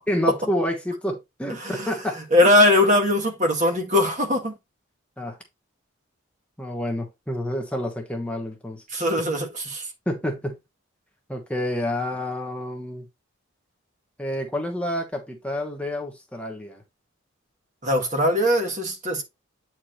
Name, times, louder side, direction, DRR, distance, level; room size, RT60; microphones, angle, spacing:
voice 1, 0.1-2.5 5.2-5.4 6.6-9.1 10.1-10.6 11.3-13.0 14.2-16.8, left 1 dB, 5° left, 1.1 m, -29 dB
voice 2, 2.3-4.5 8.9-9.8 17.8-19.2, left 1 dB, 35° right, 1.7 m, -20 dB
8.6 x 4.6 x 3.0 m
head